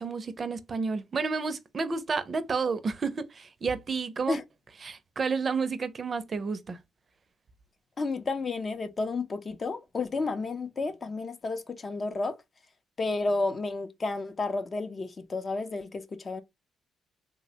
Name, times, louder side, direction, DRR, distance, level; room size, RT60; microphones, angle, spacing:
voice 1, 0.0-4.4 4.8-6.8, right 4 dB, 40° right, 0.5 m, -31 dB
voice 2, 8.0-12.4 13.0-16.4, left 3 dB, 35° left, 0.6 m, -31 dB
3.2 x 2.1 x 2.8 m
cardioid pair, 90°, 0 cm